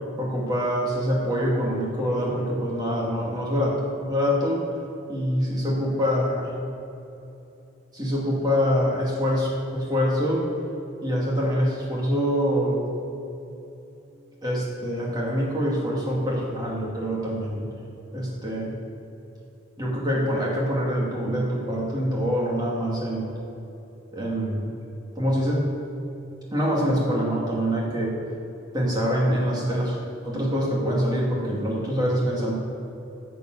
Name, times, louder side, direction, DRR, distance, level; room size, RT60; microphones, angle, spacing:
voice 1, 0.2-4.6 5.1-6.5 7.9-10.4 11.0-12.9 14.4-17.7 18.1-18.8 19.8-23.3 24.1-24.7 25.2-25.7 26.5-28.1 28.7-30.0 30.2-32.5, equal, 20° right, -4 dB, 2.3 m, -25 dB
11.0 x 5.3 x 7.9 m, 2.9 s
head